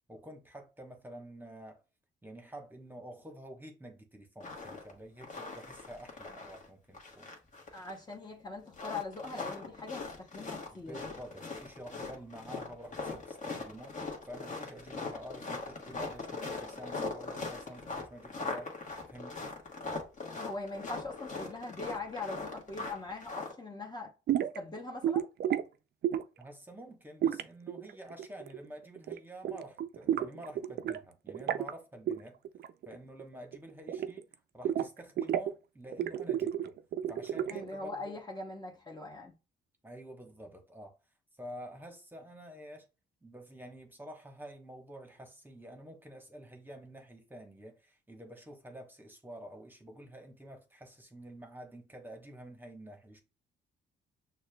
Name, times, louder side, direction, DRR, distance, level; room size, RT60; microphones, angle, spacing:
voice 1, 0.1-1.8 2.2-7.3 9.7-9.8 10.7-19.6 26.4-32.4 32.9-34.3 34.5-36.7 37.1-38.2 39.8-41.0 41.4-42.9 43.2-53.2, right 1 dB, 10° right, 1.0 m, -49 dB
sound 1, 4.4-4.9 5.2-6.7 6.9-8.1 8.7-23.5, left 3 dB, 40° left, 1.2 m, -40 dB
voice 2, 7.7-10.9 20.4-24.1 24.4-25.3 37.5-39.3, left 3 dB, 20° left, 0.8 m, -41 dB
sound 2, 24.3-24.6 25.0-25.6 26.0-26.4 27.2-28.7 29.0-29.2 29.4-31.0 31.3-31.7 32.1-32.2 32.4-32.9 33.2-34.3 34.6-35.5 35.9-37.7, right 10 dB, 55° right, 0.4 m, -32 dB
6.3 x 2.3 x 2.2 m
cardioid pair, 90°, 20 cm